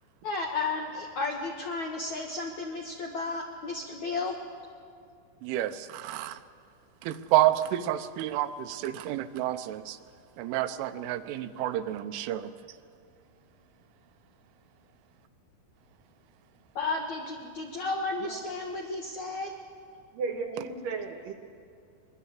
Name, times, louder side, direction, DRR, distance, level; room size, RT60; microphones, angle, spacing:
voice 1, 0.2-4.4 16.8-19.5, left 3 dB, 70° left, 1 dB, 1.8 m, -33 dB
voice 2, 5.4-6.4 7.0-10.0 10.4-12.5, right 13 dB, 90° right, 10 dB, 3.3 m, -29 dB
voice 3, 20.1-21.3, right 4 dB, 65° right, 4 dB, 2.3 m, -34 dB
23.0 x 22.0 x 7.4 m, 2.4 s
omnidirectional pair, 5.5 m